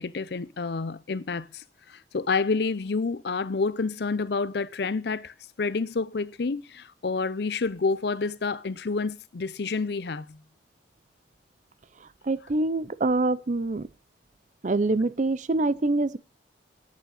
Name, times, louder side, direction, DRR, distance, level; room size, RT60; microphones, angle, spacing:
voice 1, 0.0-10.4, left 4 dB, 60° left, 0.5 m, -29 dB
voice 2, 12.0-13.9 14.6-16.2, right 2 dB, 40° right, 0.5 m, -25 dB
9.1 x 8.4 x 6.4 m
head